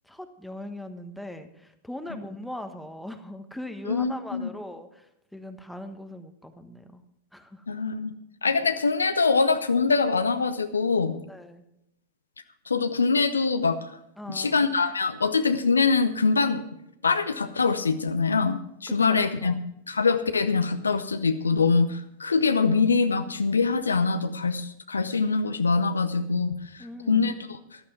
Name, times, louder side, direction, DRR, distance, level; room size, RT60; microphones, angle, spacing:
voice 1, 0.0-7.0 7.3-7.6 8.5-8.6 11.3-11.6 14.2-14.8 19.0-19.6 26.8-27.4, left 1 dB, ahead, 8 dB, 1.3 m, -40 dB
voice 2, 3.9-4.5 7.7-8.1 8.4-11.2 12.7-13.9 14.3-16.6 17.0-19.5 19.9-27.3, left 4 dB, 75° left, 10 dB, 0.8 m, -24 dB
14.0 x 12.0 x 4.6 m, 0.79 s
figure-of-eight pair, 90°, 0 cm